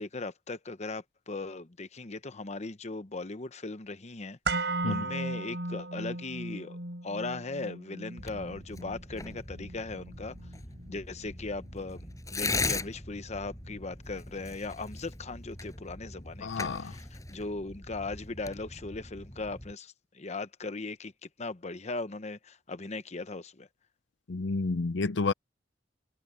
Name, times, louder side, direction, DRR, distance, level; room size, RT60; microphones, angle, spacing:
voice 1, 0.0-6.8 7.0-10.4 10.9-23.7, left 3 dB, 40° left, 0.9 m, -38 dB
sound 1, 4.5-12.5 12.8-12.9, right 2 dB, 70° right, 5.2 m, -37 dB
Tearing, 8.2-19.7, left 3 dB, 20° left, 7.8 m, -39 dB
voice 2, 16.4-16.9 24.3-25.3, left 3 dB, 75° left, 0.6 m, -30 dB
head